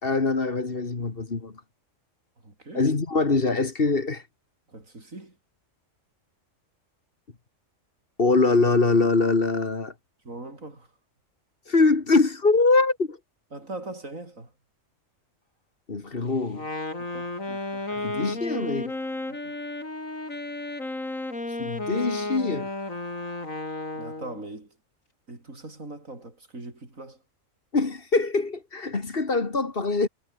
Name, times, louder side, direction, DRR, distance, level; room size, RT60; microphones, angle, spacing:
voice 1, 0.0-1.5 2.7-4.2 8.2-9.9 11.7-13.2 15.9-16.7 17.9-18.9 21.6-22.7 27.7-30.1, left 3 dB, 45° left, 2.1 m, -23 dB
voice 2, 2.4-2.8 4.7-5.3 10.2-10.9 13.5-14.5 17.0-17.8 23.9-24.7 25.3-27.2, right 2 dB, 80° right, 5.8 m, -41 dB
Wind instrument woodwind instrument, 16.5-24.4, left 2 dB, 85° left, 6.4 m, -33 dB
omnidirectional pair, 1.4 m